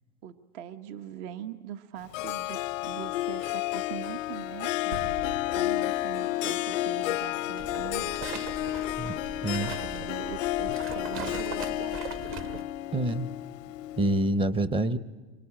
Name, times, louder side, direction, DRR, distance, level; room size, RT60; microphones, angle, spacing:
voice 1, 0.2-5.0 5.5-8.3 9.8-12.1, right 10 dB, 55° right, 10 dB, 1.2 m, -42 dB
Harp, 2.1-14.3, left 16 dB, 90° left, 0.7 m, -31 dB
sound 1, 4.9-7.3, right 3 dB, 90° right, 3.8 m, -43 dB
sound 2, 7.6-12.6, right 6 dB, 35° right, 1.1 m, -40 dB
voice 2, 9.4-9.8 12.9-13.3 14.0-15.0, right 1 dB, 15° right, 14 dB, 0.7 m, -26 dB
25.0 x 24.0 x 8.8 m, 1.4 s
supercardioid pair, 135°, 37 cm